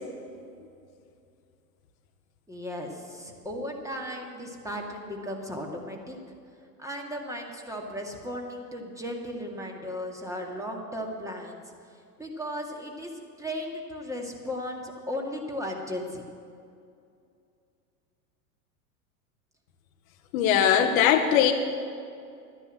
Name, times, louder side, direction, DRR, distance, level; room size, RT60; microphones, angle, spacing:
voice 1, 2.5-6.2 6.8-13.1 13.4-16.2, equal, 5° right, 1 dB, 2.0 m, -36 dB
voice 2, 20.3-21.5, left 9 dB, 55° left, 7 dB, 1.2 m, -20 dB
12.5 x 9.8 x 7.7 m, 2.4 s
hypercardioid pair, 95°, 49 cm